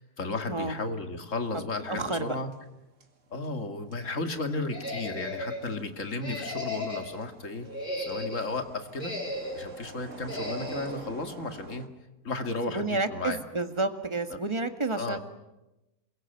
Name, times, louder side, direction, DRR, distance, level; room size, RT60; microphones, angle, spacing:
voice 1, 0.0-2.5 3.3-7.7 8.0-9.1 9.6-11.9 12.2-13.4 14.3-14.4 15.0-15.2, left 3 dB, 55° left, 6 dB, 2.5 m, -34 dB
voice 2, 1.9-2.4 12.7-15.2, right 3 dB, 20° right, 7 dB, 1.8 m, -30 dB
sound 1, 1.9-2.8 3.0-11.9, right 3 dB, 55° right, 2.5 m, -49 dB
sound 2, 4.7-5.6 6.2-7.2 7.6-8.5 9.0-9.7 10.3-11.0, left 1 dB, 35° left, 5.0 m, -35 dB
28.0 x 23.0 x 9.2 m, 0.98 s
omnidirectional pair, 1.6 m